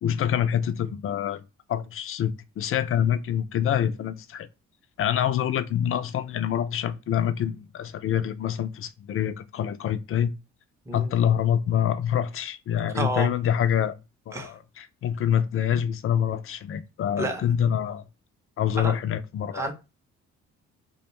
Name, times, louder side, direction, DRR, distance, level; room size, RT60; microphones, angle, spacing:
voice 1, 0.0-1.4 1.7-4.5 5.0-10.3 10.9-14.0 14.3-18.0 18.6-19.7, left 9 dB, 45° left, 0.4 m, -26 dB
voice 2, 12.9-13.3 14.3-14.5 17.2-17.4 18.8-19.0 19.5-19.7, right 2 dB, 10° right, 0.6 m, -29 dB
2.4 x 2.2 x 2.9 m
cardioid pair, 90°, 30 cm